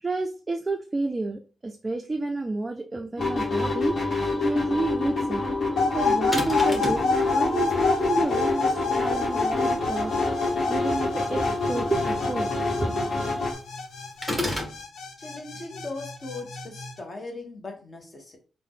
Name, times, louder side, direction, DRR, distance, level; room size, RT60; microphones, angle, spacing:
voice 1, 0.0-5.4 5.9-13.1, right 2 dB, 20° right, 3 dB, 0.3 m, -30 dB
sound 1, 3.2-13.5, left 3 dB, 60° left, 1.1 m, -27 dB
sound 2, 5.8-16.9, left 4 dB, 90° left, 0.6 m, -29 dB
sound 3, 6.3-7.1 14.2-14.8, left 1 dB, 5° left, 0.8 m, -29 dB
voice 2, 15.2-18.4, left 3 dB, 35° left, 2 dB, 0.8 m, -39 dB
3.6 x 2.0 x 3.6 m, 0.37 s
wide cardioid pair, 130°, 0 cm